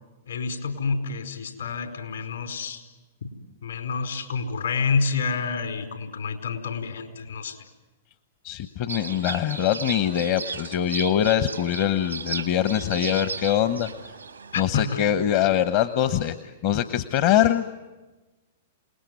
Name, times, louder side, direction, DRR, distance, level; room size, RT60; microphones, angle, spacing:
voice 1, 0.3-2.8 3.2-3.3 3.6-7.6 14.5-15.0, left 5 dB, 75° left, 5 dB, 4.6 m, -28 dB
voice 2, 8.4-13.9 14.6-17.8, left 10 dB, 50° left, 11 dB, 1.0 m, -23 dB
sound 1, 8.9-14.6, right 5 dB, 90° right, 1.6 m, -35 dB
28.0 x 19.5 x 9.5 m, 1.1 s
figure-of-eight pair, 105°, 0 cm